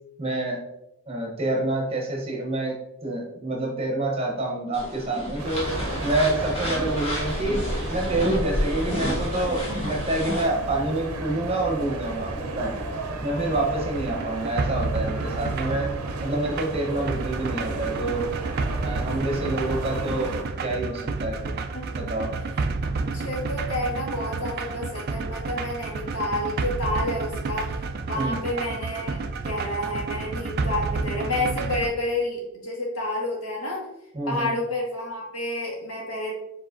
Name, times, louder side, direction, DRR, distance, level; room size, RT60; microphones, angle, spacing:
voice 1, 0.2-0.6 1.1-2.7 3.0-5.7 6.0-12.8 13.2-15.9 16.2-18.3 18.8-20.3 20.6-21.5 21.9-22.3 28.1-28.4 34.1-34.5, right 2 dB, 25° right, -1 dB, 0.8 m, -27 dB
sound 1, 4.7-10.4, left 1 dB, 25° left, 1.4 m, -30 dB
sound 2, 5.4-20.4, right 2 dB, 85° right, 0.7 m, -33 dB
sound 3, 13.8-31.9, right 3 dB, 45° right, 0.3 m, -30 dB
voice 2, 22.8-27.7 28.0-29.2 29.4-33.9 34.3-36.4, left 1 dB, 70° left, -3 dB, 1.6 m, -29 dB
4.7 x 4.1 x 2.5 m, 0.85 s
head